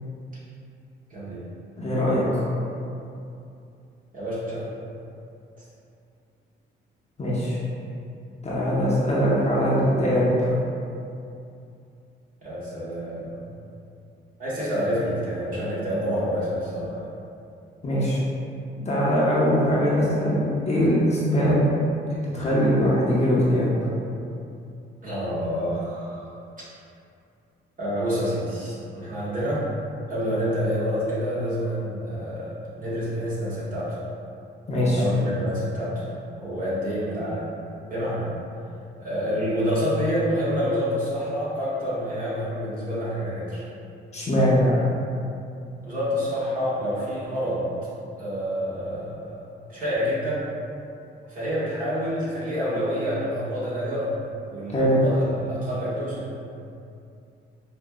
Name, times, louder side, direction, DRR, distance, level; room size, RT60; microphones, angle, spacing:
voice 1, 1.1-1.4 4.1-4.7 12.4-13.4 14.4-17.1 25.0-26.3 27.8-29.6 30.1-34.0 34.9-36.1 36.4-37.5 37.9-38.3 39.0-43.6 44.6-44.8 45.8-47.6 48.2-49.4 49.7-50.5 51.3-54.1 54.5-56.4, equal, 45° right, -10 dB, 1.4 m, -28 dB
voice 2, 1.8-2.5 7.2-7.6 8.4-10.5 17.8-18.2 18.9-20.4 20.7-21.6 22.3-23.7 34.7-35.0 44.1-44.6 54.7-55.0, equal, 35° left, -7 dB, 0.9 m, -21 dB
4.9 x 2.3 x 2.2 m, 2.6 s
cardioid pair, 90°, 20 cm